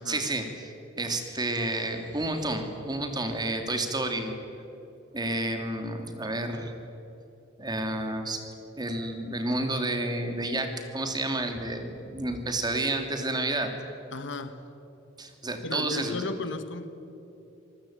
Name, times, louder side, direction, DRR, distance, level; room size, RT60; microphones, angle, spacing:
voice 1, 0.0-4.3 5.1-6.7 7.6-8.4 8.8-13.7 15.2-16.2, right 2 dB, 20° right, 5 dB, 2.6 m, -30 dB
voice 2, 14.1-14.6 15.6-16.9, left 3 dB, 65° left, 11 dB, 1.5 m, -34 dB
27.0 x 19.0 x 8.8 m, 2.9 s
head